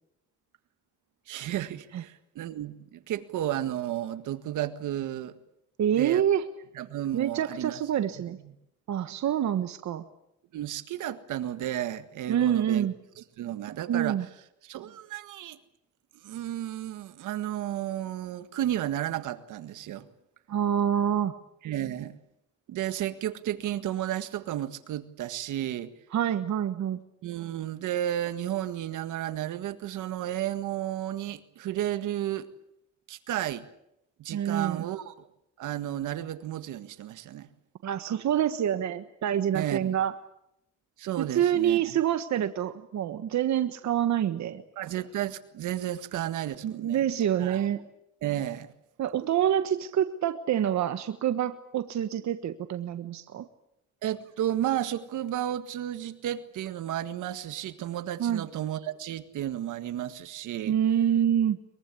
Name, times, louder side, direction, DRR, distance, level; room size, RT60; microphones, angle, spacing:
voice 1, 1.3-5.4 5.9-6.2 6.7-7.8 10.5-12.9 13.2-14.3 14.6-15.6 16.2-20.1 21.6-22.2 22.7-25.9 27.2-32.5 33.1-33.6 34.2-35.3 35.6-37.5 39.5-39.9 41.0-41.8 44.8-47.0 47.4-47.6 48.2-48.7 54.0-60.8, right 12 dB, 80° right, 11 dB, 1.8 m, -33 dB
voice 2, 5.8-6.4 7.1-8.4 8.9-10.0 12.3-12.9 13.9-14.3 20.5-21.3 26.1-27.0 34.3-34.8 37.8-40.1 41.2-44.6 46.6-47.8 49.0-53.4 58.2-58.4 60.7-61.6, right 10 dB, 65° right, 9 dB, 1.4 m, -26 dB
23.0 x 22.5 x 8.6 m, 0.80 s
cardioid pair, 90°, 30 cm